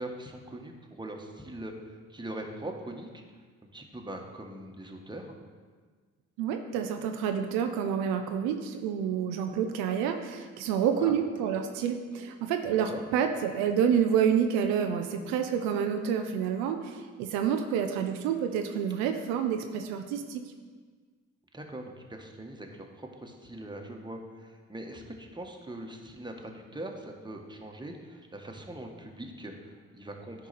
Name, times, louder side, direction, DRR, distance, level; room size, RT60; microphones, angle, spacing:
voice 1, 0.0-3.2 3.7-5.4 11.0-11.1 12.9-13.0 21.5-30.5, right 1 dB, 15° right, 2 dB, 1.3 m, -42 dB
voice 2, 6.4-20.4, right 8 dB, 80° right, 6 dB, 0.6 m, -28 dB
10.5 x 4.7 x 4.2 m, 1.5 s
hypercardioid pair, 45°, 35 cm